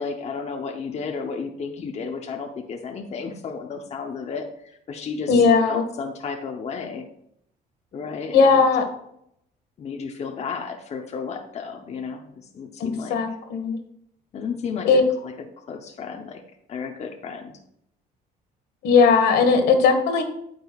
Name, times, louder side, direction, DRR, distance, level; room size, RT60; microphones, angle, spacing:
voice 1, 0.0-7.0 7.9-8.7 9.8-13.2 14.3-14.9 15.2-15.3 15.7-16.4 16.7-17.6, left 5 dB, 40° left, 3 dB, 0.8 m, -33 dB
voice 2, 5.3-5.8 8.3-8.9 12.8-13.8 14.8-15.0 18.8-20.2, left 5 dB, 75° left, 6 dB, 1.4 m, -18 dB
9.1 x 7.8 x 2.4 m, 0.73 s
cardioid pair, 110°, 17 cm